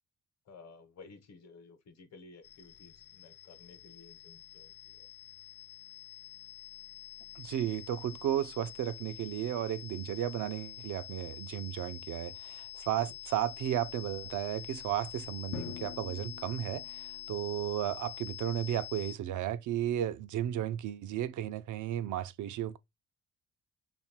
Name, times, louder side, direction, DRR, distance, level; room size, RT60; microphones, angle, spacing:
voice 1, 0.5-5.1, left 4 dB, 60° left, 1.0 m, -55 dB
sound 1, 2.4-19.2, left 14 dB, 35° left, 0.5 m, -47 dB
voice 2, 7.4-22.8, right 11 dB, 75° right, 0.6 m, -34 dB
Drum, 15.5-17.5, left 9 dB, 90° left, 0.7 m, -45 dB
3.2 x 2.6 x 4.4 m
cardioid pair, 90°, 30 cm